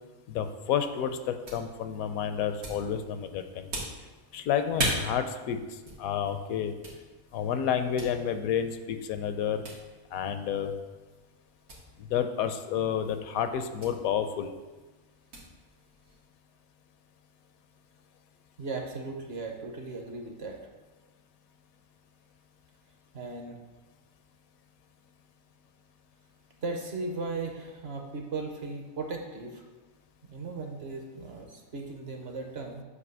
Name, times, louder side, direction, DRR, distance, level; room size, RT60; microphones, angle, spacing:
voice 1, 0.3-3.7 4.3-5.6 6.0-6.7 7.3-9.6 10.1-10.7 12.0-14.5, left 8 dB, 85° left, 9 dB, 1.0 m, -30 dB
sound 1, 0.7-16.3, right 1 dB, 90° right, 2.0 m, -41 dB
voice 2, 18.6-20.6 23.1-23.6 26.6-29.6 30.3-32.8, right 3 dB, 55° right, 3 dB, 0.9 m, -37 dB
8.2 x 2.8 x 6.0 m, 1.2 s
omnidirectional pair, 1.5 m